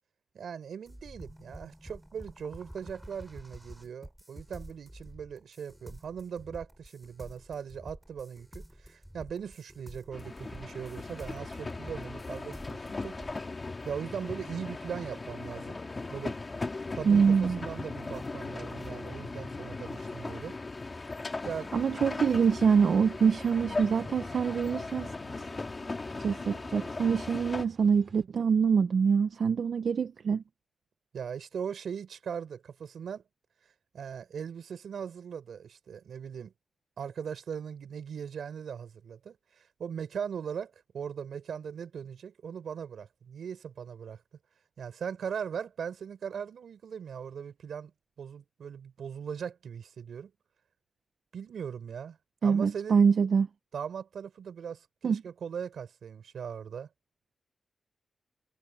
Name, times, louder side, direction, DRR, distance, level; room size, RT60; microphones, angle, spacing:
voice 1, 0.3-13.3 13.8-15.8 16.1-16.4 16.9-20.6 21.4-21.8 31.1-33.2 33.9-36.5 37.0-44.2 44.8-47.9 48.2-50.3 51.3-53.0 53.7-56.9, right 7 dB, 85° right, 4.2 m, -39 dB
sound 1, 0.9-13.4, equal, 5° right, 5.6 m, -49 dB
sound 2, 10.1-27.6, left 3 dB, 30° left, 2.3 m, -38 dB
voice 2, 17.1-17.6 21.7-25.1 26.2-30.4 52.4-53.5 55.0-55.2, right 6 dB, 65° right, 0.7 m, -25 dB
sound 3, 23.1-28.2, right 4 dB, 40° right, 7.2 m, -55 dB
wide cardioid pair, 100°, 0 cm